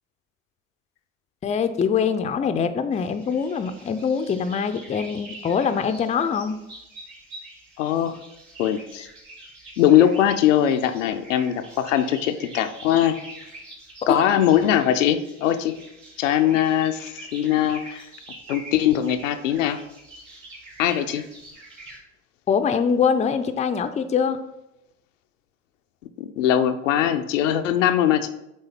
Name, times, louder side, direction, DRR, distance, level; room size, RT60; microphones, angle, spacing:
voice 1, 1.4-6.6 14.1-14.2 22.5-24.4, left 6 dB, 20° left, 9 dB, 0.4 m, -23 dB
sound 1, 2.9-22.0, right 2 dB, 70° right, 1.8 m, -44 dB
voice 2, 7.8-8.2 8.6-9.1 9.8-13.2 14.1-15.8 16.2-18.1 18.5-19.8 20.8-21.2 26.2-28.3, left 10 dB, 80° left, 8 dB, 0.5 m, -21 dB
8.3 x 3.3 x 3.5 m, 0.89 s
figure-of-eight pair, 55°, 38 cm